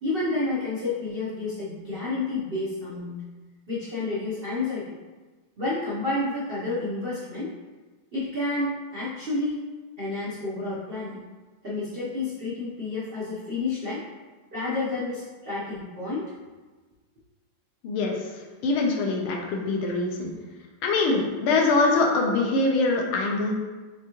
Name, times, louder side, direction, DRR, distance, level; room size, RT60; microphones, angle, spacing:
voice 1, 0.0-3.2 3.7-4.9 5.6-7.5 8.1-9.7 10.0-11.2 11.6-14.0 14.5-16.2, left 2 dB, 60° right, -8 dB, 0.5 m, -30 dB
voice 2, 17.8-18.2 18.6-20.3 20.8-23.5, left 3 dB, 90° left, 0 dB, 1.6 m, -23 dB
5.1 x 3.4 x 2.9 m, 1.3 s
omnidirectional pair, 2.3 m